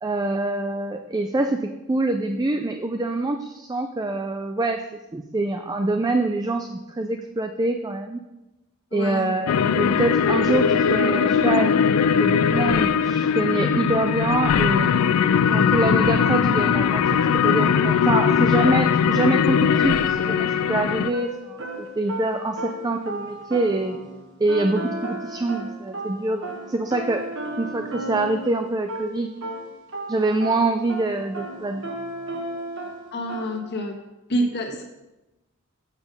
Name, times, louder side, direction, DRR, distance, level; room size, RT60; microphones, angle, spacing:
voice 1, 0.0-4.9 5.1-8.2 8.9-11.8 12.2-14.9 15.5-24.0 24.4-27.3 27.6-29.3 30.1-32.0, right 2 dB, 20° right, 6 dB, 0.4 m, -25 dB
voice 2, 8.9-9.3 33.1-34.0 34.3-34.8, equal, 50° left, 1 dB, 1.6 m, -27 dB
sound 1, 9.5-21.1, left 7 dB, 75° left, 0.4 m, -20 dB
sound 2, 17.9-24.2 24.5-28.6 28.9-33.6, right 1 dB, 60° right, 1.4 m, -35 dB
8.2 x 7.0 x 5.3 m, 1.0 s
head